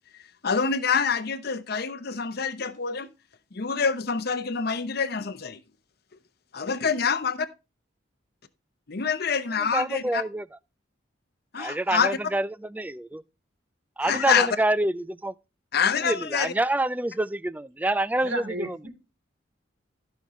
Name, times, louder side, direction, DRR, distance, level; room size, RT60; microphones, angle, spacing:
voice 1, 0.4-3.1 3.5-5.6 6.5-7.4 8.9-10.2 11.5-12.2 14.0-14.5 15.7-16.5, left 6 dB, 55° left, 0.8 m, -26 dB
voice 2, 9.7-10.4 11.6-13.2 14.0-15.3 16.0-18.8, right 1 dB, 10° right, 0.4 m, -27 dB
voice 3, 18.2-18.9, right 1 dB, 75° right, 2.9 m, -33 dB
15.0 x 5.4 x 3.1 m
head